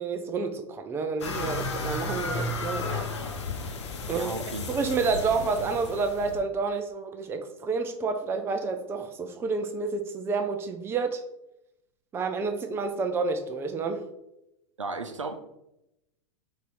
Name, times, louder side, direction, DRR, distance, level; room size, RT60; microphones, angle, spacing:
voice 1, 0.0-3.1 4.1-4.3 4.7-11.2 12.1-14.0, right 4 dB, 15° right, 7 dB, 0.4 m, -29 dB
sound 1, 1.2-6.4, left 3 dB, 65° left, 0.8 m, -33 dB
voice 2, 4.1-4.6 14.8-15.5, right 3 dB, 80° right, 7 dB, 0.5 m, -35 dB
4.0 x 2.6 x 4.7 m, 0.87 s
figure-of-eight pair, 90°, 16 cm